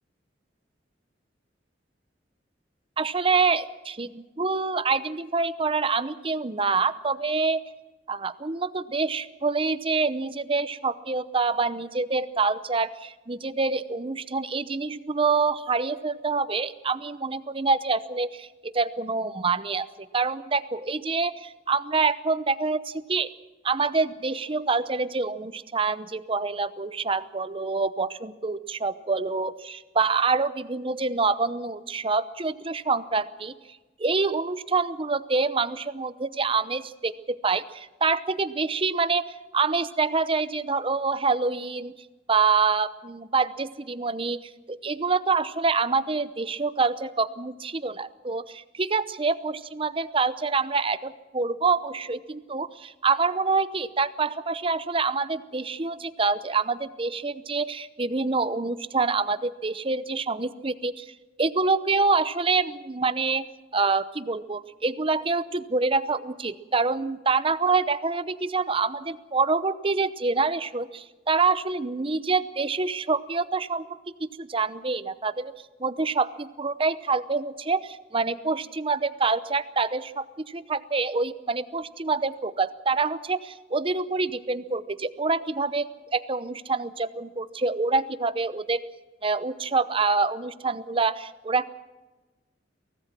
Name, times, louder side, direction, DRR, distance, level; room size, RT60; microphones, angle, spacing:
voice 1, 3.0-7.6 8.1-23.3 23.6-33.5 34.0-39.2 39.5-41.9 42.3-61.1 61.4-63.5 63.7-73.9 74.2-75.5 75.8-85.9 86.1-88.8 89.2-91.7, right 4 dB, 30° right, 14 dB, 0.8 m, -26 dB
24.0 x 18.0 x 6.0 m, 1.2 s
head